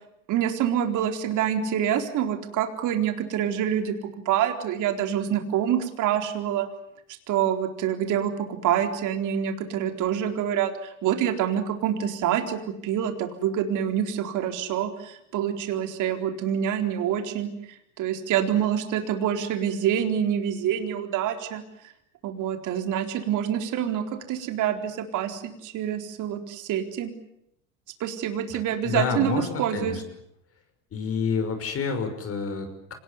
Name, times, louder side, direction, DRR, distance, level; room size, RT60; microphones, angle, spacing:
voice 1, 0.3-4.0 4.3-6.7 7.3-10.7 11.0-17.5 18.0-21.6 22.2-27.1 28.0-30.0, right 9 dB, 55° right, 5 dB, 4.2 m, -26 dB
voice 2, 28.5-30.0 30.9-32.9, left 5 dB, 40° left, 7 dB, 5.8 m, -29 dB
26.5 x 19.5 x 9.6 m, 0.77 s
supercardioid pair, 110°, 37 cm